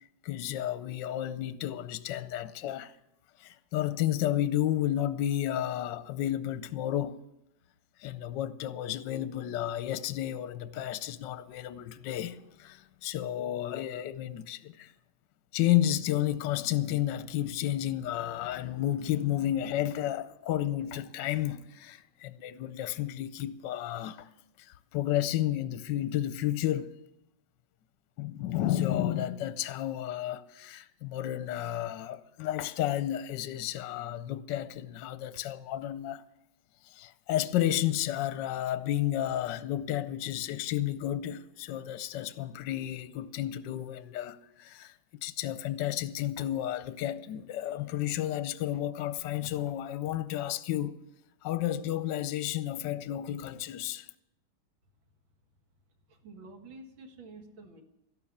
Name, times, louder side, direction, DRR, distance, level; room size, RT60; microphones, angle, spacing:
voice 1, 0.2-2.9 3.4-7.2 8.0-14.9 15.5-24.3 24.6-26.9 28.2-36.2 36.8-51.0 51.4-54.1, left 12 dB, 70° left, 1.2 m, -32 dB
voice 2, 56.1-57.8, right 3 dB, 70° right, 2.5 m, -49 dB
13.0 x 12.0 x 7.2 m
omnidirectional pair, 2.2 m